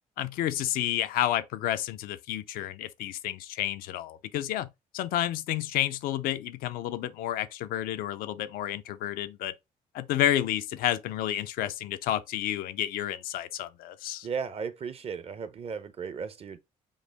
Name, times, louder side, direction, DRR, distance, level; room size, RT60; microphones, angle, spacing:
voice 1, 0.2-4.7 4.9-9.5 9.9-14.3, left 12 dB, 80° left, 0.4 m, -30 dB
voice 2, 14.2-16.6, right 6 dB, 40° right, 0.6 m, -35 dB
5.3 x 2.0 x 3.3 m
cardioid pair, 90°, 15 cm